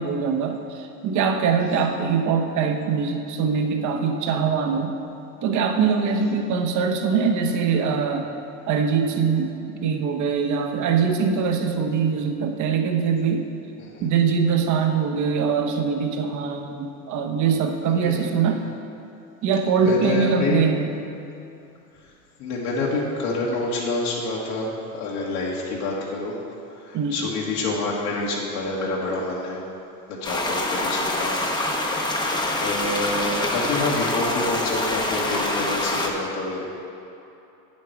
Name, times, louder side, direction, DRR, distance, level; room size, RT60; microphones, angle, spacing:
voice 1, 0.0-5.0 5.4-8.3 8.7-9.5 9.8-13.4 14.0-18.6 19.4-21.0 26.9-27.2, right 6 dB, 40° right, 5 dB, 1.0 m, -22 dB
voice 2, 18.0-18.5 19.8-20.6 22.4-26.4 26.8-29.6 30.1-31.3 32.0-32.2 32.6-36.6, left 3 dB, 65° left, -5 dB, 1.8 m, -28 dB
sound 1, 30.2-36.1, left 1 dB, 10° left, 0.9 m, -25 dB
8.5 x 7.4 x 4.6 m, 2.8 s
hypercardioid pair, 105°, 46 cm